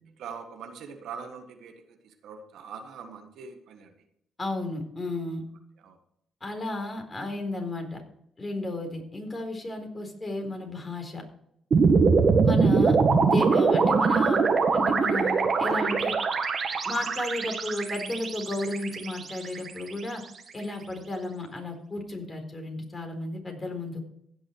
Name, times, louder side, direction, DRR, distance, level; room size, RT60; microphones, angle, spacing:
voice 1, 0.2-3.9 5.8-6.0 15.6-15.8, right 5 dB, 75° right, 6 dB, 1.5 m, -42 dB
voice 2, 4.4-5.4 6.4-8.0 8.4-11.2 12.4-16.2 16.8-20.2 20.5-24.0, left 2 dB, 30° left, 4 dB, 4.0 m, -33 dB
sound 1, 11.7-20.0, right 4 dB, 50° right, 2.0 m, -23 dB
16.0 x 6.2 x 4.7 m, 0.74 s
supercardioid pair, 55°, 0 cm